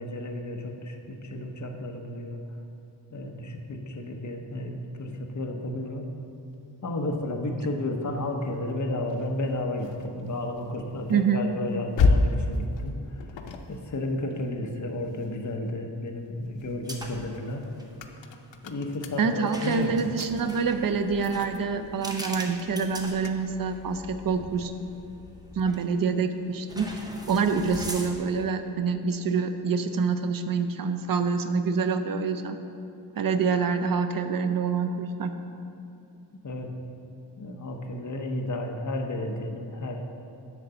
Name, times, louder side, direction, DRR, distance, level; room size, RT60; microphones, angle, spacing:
voice 1, 0.0-2.4 3.1-6.1 6.8-13.3 13.7-17.7 18.6-20.0 36.4-36.8 37.4-40.0, left 1 dB, 40° left, 3 dB, 0.9 m, -32 dB
sound 1, 9.1-15.6 16.1-25.9, left 3 dB, 90° left, 0.7 m, -33 dB
voice 2, 11.1-11.4 19.2-24.7 25.6-32.6 33.2-35.3, right 5 dB, 50° right, 8 dB, 0.6 m, -26 dB
sound 2, 16.8-17.4 17.7-17.9 19.4-23.8 24.4-24.5 25.7-26.1 26.7-28.4, right 1 dB, 10° right, 0.7 m, -41 dB
10.5 x 3.9 x 6.8 m, 2.7 s
wide cardioid pair, 130°, 43 cm